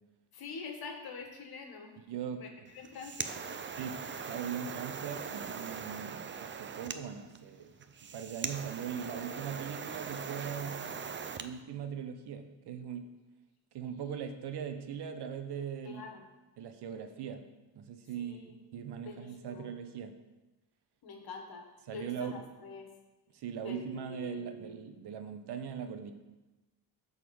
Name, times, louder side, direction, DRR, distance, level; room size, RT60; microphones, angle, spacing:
voice 1, 0.3-2.0 2.4-3.6 15.8-16.3 18.2-18.6 19.0-19.7 21.0-22.9 23.6-24.8, left 5 dB, 60° left, 3 dB, 1.7 m, -46 dB
voice 2, 2.1-2.4 3.8-10.9 11.4-13.1 13.7-16.0 16.6-17.5 17.7-20.2 21.9-22.4 23.3-26.1, right 8 dB, 70° right, 7 dB, 1.0 m, -40 dB
sound 1, 2.7-11.5, right 6 dB, 30° right, 0.5 m, -41 dB
11.0 x 4.2 x 7.0 m, 1.1 s
cardioid pair, 140°, 41 cm